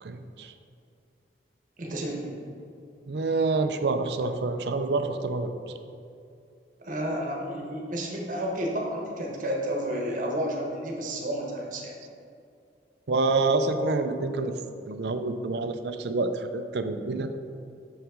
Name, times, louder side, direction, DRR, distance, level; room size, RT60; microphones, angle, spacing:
voice 1, 0.0-0.5 3.1-5.5 13.1-14.5 14.9-17.3, right 3 dB, 65° right, 8 dB, 0.5 m, -27 dB
voice 2, 1.8-2.4 6.8-11.9, equal, 50° right, -1 dB, 1.1 m, -31 dB
6.4 x 5.7 x 3.7 m, 2.5 s
head